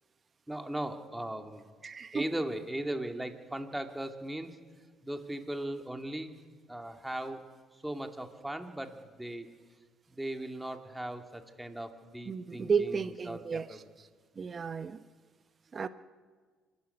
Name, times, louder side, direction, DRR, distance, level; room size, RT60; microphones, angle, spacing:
voice 1, 0.5-1.6 2.1-4.5 5.0-6.3 6.7-7.4 7.8-9.5 10.1-13.0 13.3-13.8 14.5-14.6, right 1 dB, 5° right, 5 dB, 2.3 m, -38 dB
voice 2, 1.8-2.3 12.3-14.1 14.4-15.0 15.7-15.9, right 6 dB, 35° right, 12 dB, 0.8 m, -33 dB
25.0 x 12.5 x 9.7 m, 1.5 s
supercardioid pair, 85°, 0 cm